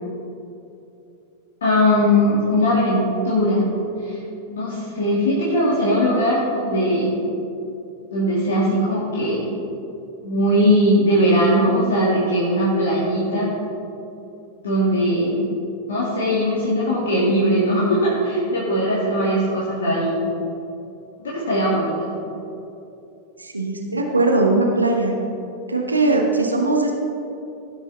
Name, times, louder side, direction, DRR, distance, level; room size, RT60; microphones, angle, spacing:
voice 1, 1.6-3.6 4.0-4.2 4.5-7.1 8.1-9.5 10.2-13.5 14.6-15.4 15.9-20.1 21.2-22.1, equal, 65° left, -7 dB, 2.2 m, -20 dB
voice 2, 23.4-25.2 25.7-26.9, right 2 dB, 80° right, 1 dB, 1.1 m, -20 dB
17.0 x 6.3 x 4.0 m, 2.8 s
figure-of-eight pair, 90°, 0 cm